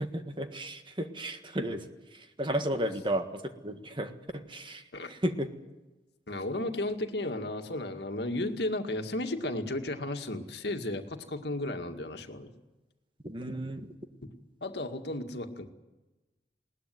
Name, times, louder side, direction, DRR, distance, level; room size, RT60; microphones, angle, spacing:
voice 1, 0.0-1.8 2.1-4.8 5.1-5.5 13.2-13.9, right 1 dB, 30° right, 7 dB, 1.7 m, -33 dB
voice 2, 6.3-12.5 14.6-15.7, left 1 dB, 70° left, 6 dB, 2.1 m, -34 dB
20.5 x 18.5 x 9.5 m, 1.1 s
head